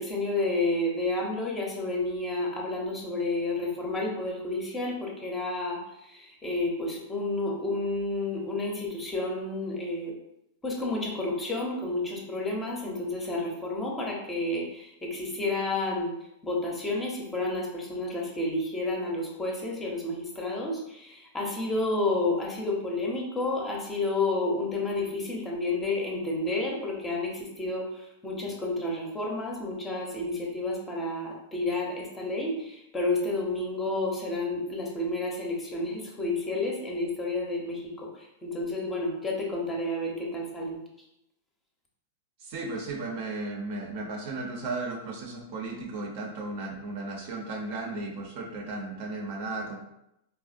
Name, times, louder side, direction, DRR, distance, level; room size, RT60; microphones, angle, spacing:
voice 1, 0.0-10.1 10.6-16.2 16.4-40.8, left 2 dB, 15° left, -2 dB, 0.7 m, -30 dB
voice 2, 42.4-49.8, right 3 dB, 55° right, 1 dB, 0.7 m, -35 dB
3.5 x 2.0 x 2.5 m, 0.83 s
hypercardioid pair, 130°, 0 cm